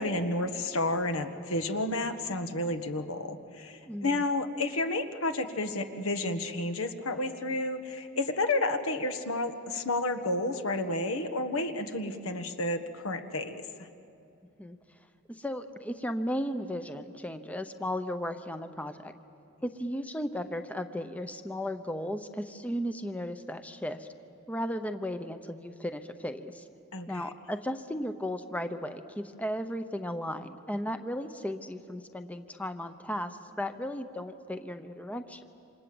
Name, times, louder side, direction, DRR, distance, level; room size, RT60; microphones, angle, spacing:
voice 1, 0.0-13.9 26.9-27.2, left 2 dB, 75° left, 7 dB, 1.5 m, -31 dB
voice 2, 3.9-4.2 14.6-14.8 15.3-19.1 19.6-24.1 24.5-26.6 27.1-35.4, equal, 5° left, 8 dB, 0.7 m, -35 dB
28.0 x 26.5 x 7.8 m, 2.6 s
head